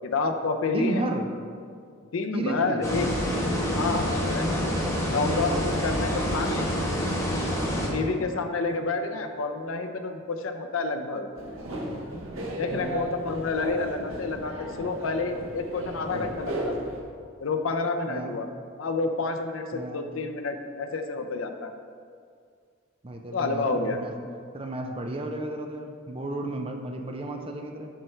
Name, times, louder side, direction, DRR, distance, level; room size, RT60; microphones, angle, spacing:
voice 1, 0.0-1.1 2.1-3.1 3.7-4.5 5.0-6.7 7.9-11.3 12.5-16.9 17.4-18.5 18.8-21.7 23.3-24.0, left 3 dB, 80° left, 6 dB, 0.6 m, -29 dB
voice 2, 0.7-1.3 2.3-2.8 7.9-8.2 12.7-13.0 18.1-18.4 19.7-20.0 23.0-24.1 24.5-27.9, right 1 dB, 25° right, 3 dB, 0.5 m, -33 dB
sound 1, 2.8-7.9, equal, 15° left, 1.2 m, -27 dB
sound 2, 11.4-17.0, right 1 dB, 85° right, 1.1 m, -35 dB
9.0 x 3.3 x 5.7 m, 2.2 s
head